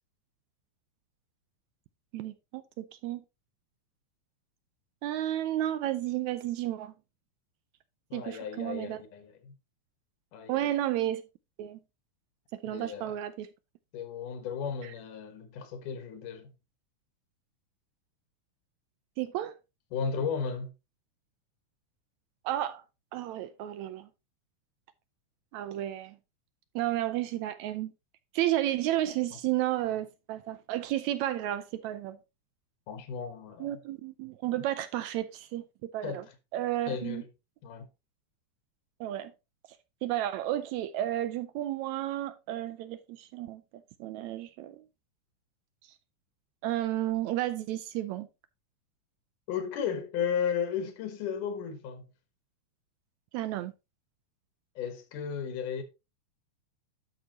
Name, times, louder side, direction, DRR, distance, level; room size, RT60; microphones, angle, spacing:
voice 1, 2.1-3.2 5.0-6.9 8.1-9.0 10.5-11.2 11.6-11.8 12.5-13.5 19.2-19.6 22.5-22.8 23.1-24.1 25.5-26.2 26.8-27.9 28.3-32.2 33.6-36.2 36.5-37.2 39.0-39.3 40.0-43.6 44.0-44.8 46.6-48.3 53.3-53.7, right 13 dB, 80° right, 1.8 m, -32 dB
voice 2, 8.1-9.5 10.3-10.7 12.7-13.2 13.9-16.5 19.9-20.7 29.8-29.9 32.9-33.8 36.0-36.3 36.9-37.3 37.6-37.9 49.5-52.1 54.8-55.8, left 7 dB, 85° left, 2.9 m, -34 dB
11.0 x 6.1 x 2.9 m
omnidirectional pair, 3.6 m